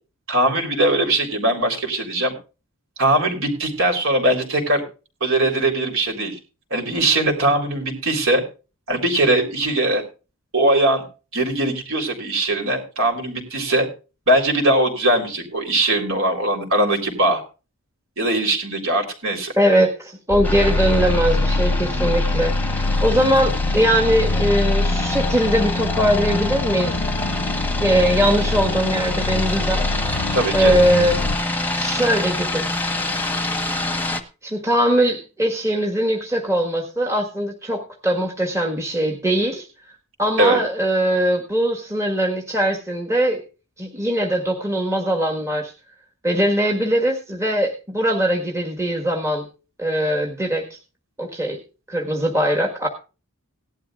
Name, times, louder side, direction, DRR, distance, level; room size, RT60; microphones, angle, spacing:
voice 1, 0.3-2.3 3.0-4.8 5.2-6.4 6.7-8.4 8.9-10.0 10.5-11.0 11.3-13.9 14.3-17.4 18.2-19.5 21.9-22.1 30.3-30.7 40.4-40.6, right 1 dB, 60° right, 2 dB, 3.9 m, -20 dB
voice 2, 19.6-27.3 27.8-29.9 30.5-31.3 31.7-32.7 34.4-39.7 40.2-43.4 43.8-45.7 46.2-49.5 49.8-50.8 51.2-51.6 51.9-52.9, right 1 dB, 15° right, 1 dB, 1.6 m, -21 dB
sound 1, 20.3-31.4, left 2 dB, 80° left, 0.7 m, -24 dB
sound 2, 20.4-34.2, left 2 dB, 10° left, 1.3 m, -27 dB
18.0 x 12.0 x 2.5 m, 0.32 s
head